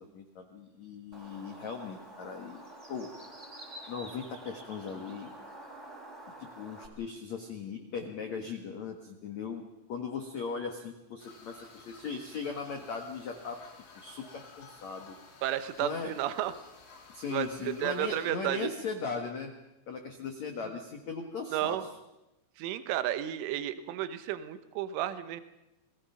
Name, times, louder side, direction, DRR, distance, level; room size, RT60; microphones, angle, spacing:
voice 1, 0.0-2.6 2.9-3.1 3.9-5.3 6.4-9.6 9.9-13.6 14.0-15.2 15.8-16.1 17.1-19.5 19.9-21.8, left 5 dB, 65° left, 4 dB, 1.8 m, -38 dB
Bird, 1.1-6.9, right 1 dB, 15° right, 3.7 m, -48 dB
sound 1, 11.2-18.3, left 4 dB, 80° left, 6.9 m, -54 dB
voice 2, 15.4-16.5 17.3-18.7 20.6-20.8 21.5-21.8 22.6-25.4, right 12 dB, 80° right, 11 dB, 3.6 m, -32 dB
29.5 x 21.0 x 5.8 m, 0.95 s
omnidirectional pair, 5.6 m